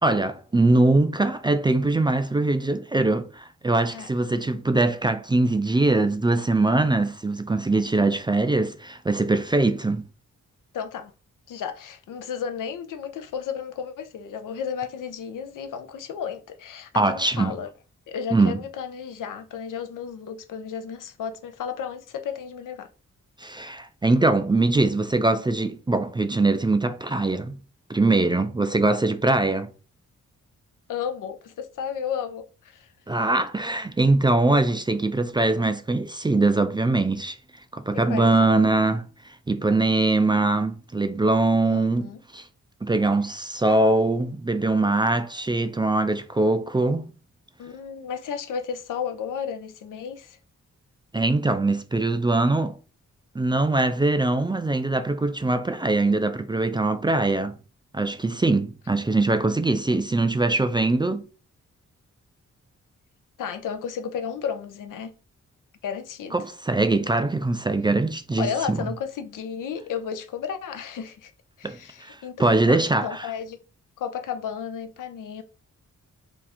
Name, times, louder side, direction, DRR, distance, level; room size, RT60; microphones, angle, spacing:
voice 1, 0.0-10.0 16.9-17.5 18.3-18.6 23.4-27.6 27.9-29.7 33.1-37.4 37.7-42.5 42.8-47.1 51.1-52.7 53.3-57.6 57.9-61.2 66.3-68.8 71.6-73.3, right 2 dB, 15° right, 0.3 m, -22 dB
voice 2, 10.7-11.1 11.5-17.7 18.1-22.9 30.9-32.9 37.9-38.5 40.1-40.3 41.6-42.2 43.6-43.8 47.6-50.4 63.4-65.1 65.8-66.3 68.4-71.3 71.6-73.6 74.0-75.4, left 7 dB, 75° left, 0.5 m, -33 dB
2.8 x 2.4 x 4.1 m
cardioid pair, 55°, 32 cm